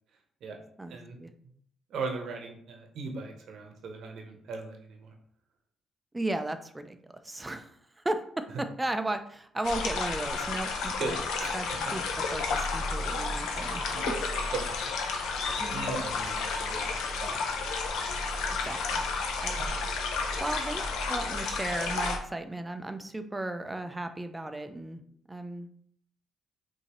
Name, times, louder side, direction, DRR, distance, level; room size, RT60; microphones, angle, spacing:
voice 1, 0.8-1.3 6.1-11.2 11.5-12.0 12.3-13.9 15.6-16.0 18.6-19.0 19.4-19.8 20.1-25.0 25.3-25.9, right 1 dB, 15° right, 8 dB, 0.4 m, -35 dB
voice 2, 1.9-5.1 11.0-11.9 13.9-17.4 19.6-19.7 20.3-20.4, right 4 dB, 70° right, 3 dB, 0.8 m, -39 dB
sound 1, 9.6-22.2, left 4 dB, 85° left, 0.6 m, -31 dB
5.5 x 2.7 x 3.0 m, 0.65 s
cardioid pair, 90°, 0 cm